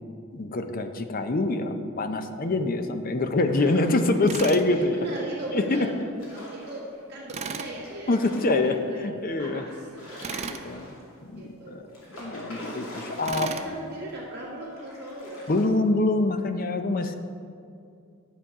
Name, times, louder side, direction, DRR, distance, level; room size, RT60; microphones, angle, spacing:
voice 1, 0.3-5.0 5.5-5.9 8.1-9.6 10.4-11.0 11.2-11.8 12.2-13.5 15.5-17.1, left 2 dB, 40° left, 8 dB, 0.6 m, -25 dB
sound 1, 3.3-4.7 5.9-7.0 7.8-8.8 9.3-9.4 9.7-11.2 11.9-13.8 14.1-14.2 14.8-15.7, left 1 dB, 85° left, 2.6 m, -43 dB
Tools, 4.3-4.7 7.3-7.7 10.2-10.7 13.3-13.7, right 5 dB, 30° right, 0.4 m, -34 dB
voice 2, 4.7-6.0 6.3-9.1 9.4-10.4 11.4-12.0 13.3-15.5, right 1 dB, 50° right, -7 dB, 1.9 m, -38 dB
10.0 x 6.9 x 4.8 m, 2.4 s
head